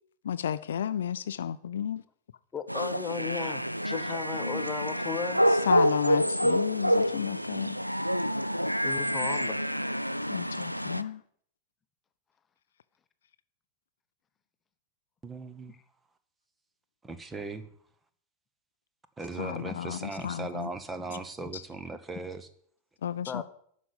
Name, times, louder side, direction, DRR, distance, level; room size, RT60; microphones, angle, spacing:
voice 1, 0.2-2.0 5.7-7.8 10.3-11.2 19.4-20.7 21.5-21.6 23.0-23.4, left 9 dB, 65° left, 0.5 m, -32 dB
voice 2, 2.5-5.4 8.8-9.6 21.0-21.1 21.4-21.5 23.3-23.4, left 6 dB, 20° left, 1.0 m, -36 dB
sound 1, 2.7-11.0, equal, 90° right, 0.4 m, -28 dB
voice 3, 15.2-15.7 17.0-17.7 19.2-22.5, right 3 dB, 15° right, 1.0 m, -38 dB
11.5 x 5.2 x 8.6 m
figure-of-eight pair, 90°, 0 cm